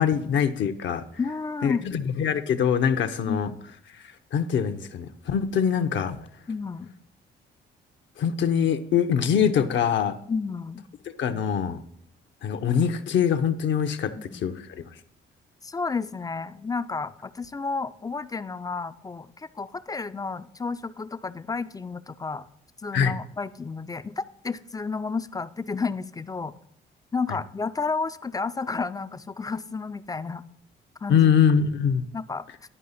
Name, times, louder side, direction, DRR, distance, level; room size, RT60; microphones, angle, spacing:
voice 1, 0.0-1.0 1.6-3.5 4.3-6.2 8.2-10.1 11.2-11.8 12.4-14.5 22.9-23.2 31.1-32.1, left 7 dB, 65° left, 9 dB, 0.7 m, -23 dB
voice 2, 1.2-2.0 3.3-3.6 6.5-6.9 10.3-10.9 14.3-14.4 15.6-22.5 22.8-26.6 27.1-30.4 31.0-31.3 32.1-32.5, left 4 dB, 20° left, 14 dB, 0.3 m, -31 dB
11.0 x 4.9 x 4.0 m, 0.73 s
cardioid pair, 75°, 21 cm